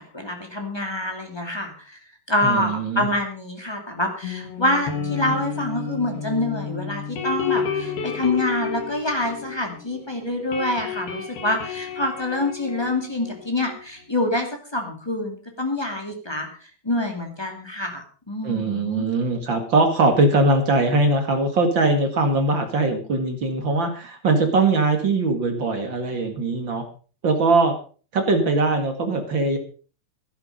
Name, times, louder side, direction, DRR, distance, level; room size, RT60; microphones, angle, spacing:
voice 1, 0.1-2.0 2.3-16.5 16.8-19.0, left 1 dB, 20° left, 3 dB, 0.6 m, -26 dB
voice 2, 2.4-3.1 18.4-26.8 27.2-27.7 28.1-29.6, right 2 dB, 45° right, 5 dB, 1.5 m, -21 dB
sound 1, 4.2-10.0 10.3-13.8, left 6 dB, 60° left, 4.4 m, -31 dB
14.5 x 11.5 x 5.3 m, 0.38 s
omnidirectional pair, 5.1 m